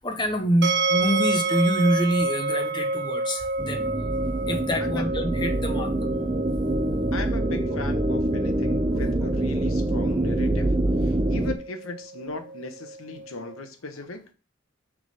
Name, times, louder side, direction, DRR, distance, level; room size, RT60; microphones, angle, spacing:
voice 1, 0.0-3.9 4.5-5.9, equal, 20° left, 6 dB, 0.8 m, -26 dB
sound 1, 0.6-13.6, right 3 dB, 55° right, 0.9 m, -30 dB
sound 2, 3.6-11.5, right 1 dB, 15° right, 0.3 m, -25 dB
voice 2, 7.1-10.7 11.0-14.3, left 3 dB, 85° left, 8 dB, 1.1 m, -37 dB
6.1 x 3.7 x 5.5 m, 0.34 s
head